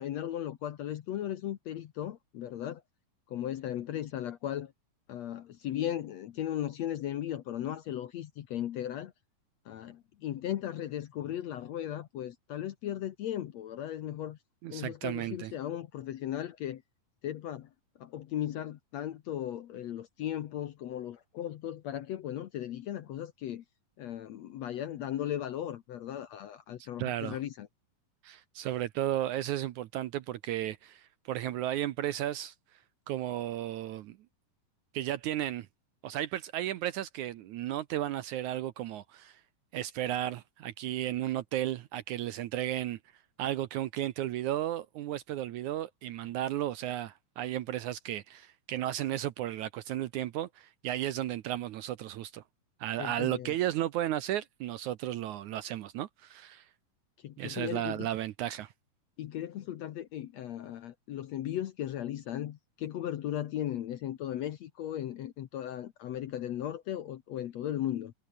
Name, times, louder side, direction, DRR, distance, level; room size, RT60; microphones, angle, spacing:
voice 1, 0.0-2.8 3.3-4.7 5.1-9.1 9.7-14.4 14.7-16.8 17.2-17.7 18.0-23.6 24.0-27.7 53.0-53.5 57.2-58.1 59.2-68.1, left 11 dB, 65° left, 1.8 m, -37 dB
voice 2, 14.6-15.5 26.8-27.4 28.2-32.5 33.1-34.2 34.9-35.7 36.0-39.4 39.7-43.0 43.4-52.4 52.8-56.7 57.4-58.7, right 13 dB, 75° right, 2.0 m, -34 dB
omnidirectional pair, 4.1 m